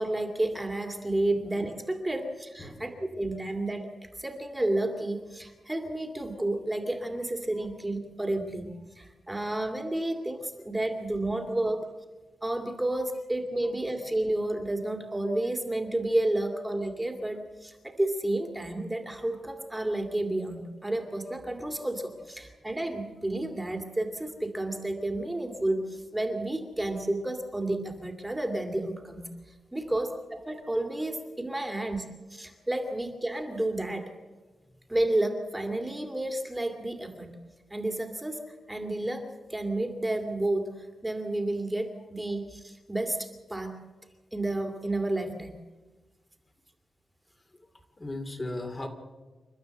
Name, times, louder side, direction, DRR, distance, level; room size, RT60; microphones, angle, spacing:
voice 1, 0.0-3.9 4.2-11.9 12.4-29.3 29.7-34.0 34.9-37.4 37.7-43.8 44.3-45.5, right 1 dB, 10° right, 3 dB, 2.4 m, -31 dB
voice 2, 48.0-48.9, left 2 dB, 20° left, 3 dB, 2.4 m, -36 dB
29.0 x 12.5 x 7.8 m, 1.3 s
wide cardioid pair, 135°, 0 cm